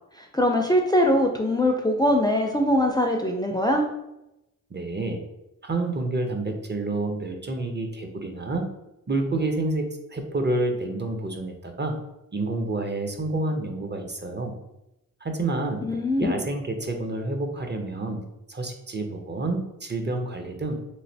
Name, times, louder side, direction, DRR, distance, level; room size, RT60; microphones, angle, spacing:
voice 1, 0.2-3.9 15.8-16.5, left 1 dB, 10° left, 2 dB, 0.4 m, -22 dB
voice 2, 4.7-5.2 5.6-8.6 9.1-12.0 12.3-14.5 15.2-15.8 16.2-18.2 18.5-20.8, right 2 dB, 30° right, 4 dB, 0.6 m, -28 dB
3.1 x 2.5 x 2.7 m, 0.88 s
cardioid pair, 45°, 34 cm